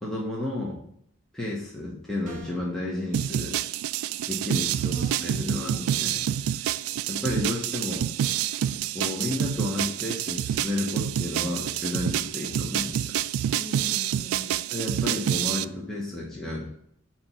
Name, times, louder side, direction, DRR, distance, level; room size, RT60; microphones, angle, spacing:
voice 1, 0.0-0.8 1.3-3.6 4.3-6.7 7.1-8.0 8.9-13.1 14.7-16.7, left 2 dB, ahead, -5 dB, 1.0 m, -32 dB
sound 1, 2.2-2.8, right 3 dB, 35° right, 1.3 m, -45 dB
sound 2, 3.1-15.6, right 10 dB, 85° right, 0.3 m, -28 dB
voice 2, 4.7-5.9 13.5-14.6, right 2 dB, 35° left, -2 dB, 1.8 m, -41 dB
8.5 x 3.0 x 5.7 m, 0.68 s
head